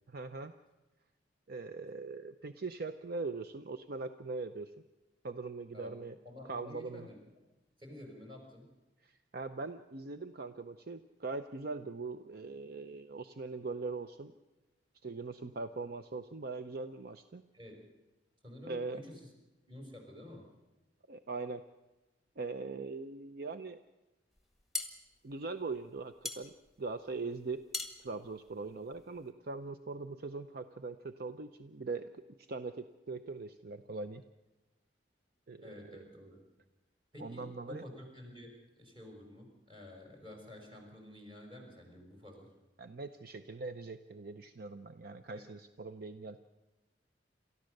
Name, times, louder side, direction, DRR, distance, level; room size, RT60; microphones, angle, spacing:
voice 1, 0.1-0.5 1.5-4.7 5.2-6.2 6.4-7.1 9.0-14.3 15.0-17.4 18.6-19.0 21.1-21.6 22.4-23.8 25.2-27.6 28.0-32.1 32.5-34.2 35.5-35.8 37.2-37.8 42.8-46.4, right 3 dB, 55° right, 9 dB, 0.6 m, -41 dB
voice 2, 6.2-7.2 7.8-8.7 17.5-17.9 18.4-19.3 19.7-20.5 35.6-36.4 37.1-38.5 38.8-42.5 45.3-45.4, left 1 dB, 25° right, 1 dB, 5.4 m, -50 dB
sound 1, 24.4-29.3, left 3 dB, ahead, 1.7 m, -43 dB
29.0 x 14.0 x 6.6 m, 1.1 s
head